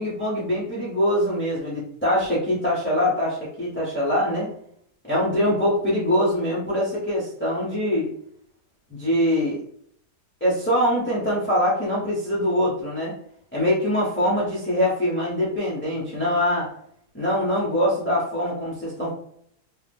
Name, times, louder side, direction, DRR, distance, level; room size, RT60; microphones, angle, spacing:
voice 1, 0.0-4.5 5.1-8.1 8.9-9.6 10.4-13.1 13.5-16.7 17.1-19.1, equal, 15° left, -8 dB, 0.4 m, -23 dB
2.7 x 2.2 x 3.4 m, 0.67 s
omnidirectional pair, 1.7 m